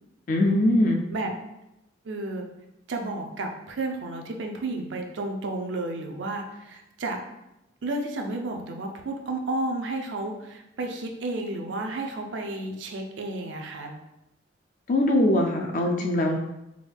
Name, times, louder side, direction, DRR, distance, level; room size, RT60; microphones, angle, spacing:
voice 1, 0.3-1.0 14.9-16.4, left 1 dB, 45° left, 2 dB, 0.3 m, -22 dB
voice 2, 2.0-2.4 2.9-7.2 7.8-13.9, right 2 dB, 70° right, 3 dB, 0.5 m, -32 dB
3.5 x 2.2 x 3.4 m, 0.90 s
head